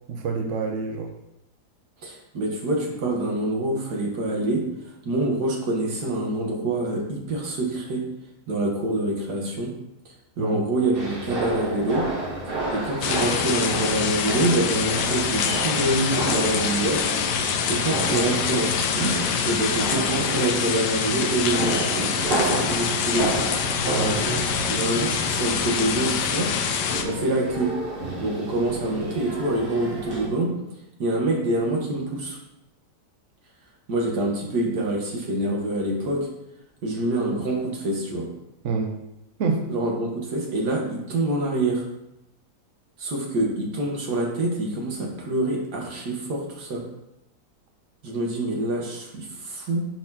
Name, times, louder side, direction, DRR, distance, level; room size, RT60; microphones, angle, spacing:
voice 1, 0.1-1.1 10.4-10.6 23.9-24.3 38.6-39.0 39.4-39.6, right 4 dB, 60° right, 2 dB, 1.0 m, -27 dB
voice 2, 2.0-4.7 5.1-8.0 8.5-9.7 10.4-12.1 12.7-17.1 17.7-19.1 19.5-23.6 24.7-26.5 27.0-27.7 28.2-30.6 31.0-32.4 33.9-36.3 36.8-38.3 39.7-41.9 43.0-46.8 48.0-49.9, right 1 dB, 75° right, -1 dB, 1.9 m, -26 dB
sound 1, 10.9-30.3, right 2 dB, 35° right, 1.2 m, -31 dB
sound 2, 13.0-27.0, left 7 dB, 90° left, 1.2 m, -25 dB
10.0 x 4.2 x 2.9 m, 0.88 s
omnidirectional pair, 1.8 m